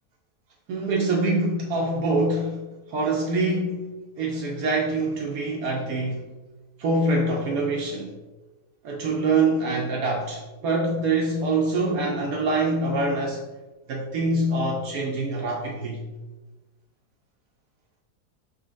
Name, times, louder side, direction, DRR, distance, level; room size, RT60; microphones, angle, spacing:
voice 1, 0.7-3.8 4.2-6.2 6.8-8.1 8.8-13.4 13.9-16.0, right 2 dB, 70° right, -1 dB, 1.0 m, -25 dB
5.7 x 3.7 x 2.4 m, 1.2 s
omnidirectional pair, 1.7 m